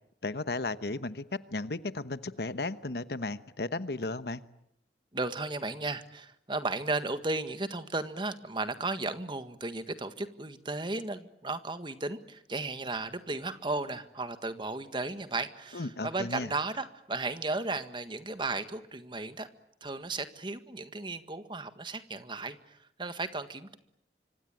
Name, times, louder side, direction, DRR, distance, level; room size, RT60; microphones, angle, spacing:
voice 1, 0.2-4.4 15.7-16.5, left 2 dB, 65° left, 13 dB, 1.1 m, -35 dB
voice 2, 5.1-19.5 19.8-23.8, right 3 dB, 25° right, 10 dB, 1.6 m, -35 dB
25.5 x 25.0 x 9.1 m, 0.76 s
head